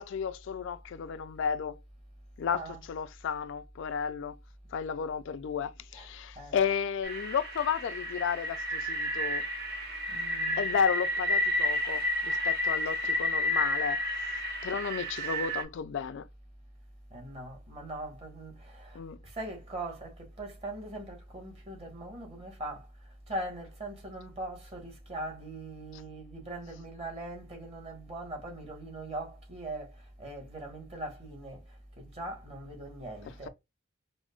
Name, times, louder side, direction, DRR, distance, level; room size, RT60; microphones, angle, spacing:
voice 1, 0.0-1.8 2.4-4.3 4.7-9.4 10.6-14.0 14.6-16.3 18.9-19.2 25.9-26.0, left 7 dB, 65° left, 0.3 m, -33 dB
voice 2, 2.5-2.8 5.9-6.1 6.4-6.5 10.1-10.6 17.1-22.8 23.3-29.9 30.2-31.6 32.0-33.5, right 1 dB, 30° right, 1.3 m, -41 dB
sound 1, 7.0-15.6, left 1 dB, 55° right, 0.9 m, -31 dB
4.9 x 2.0 x 2.3 m
head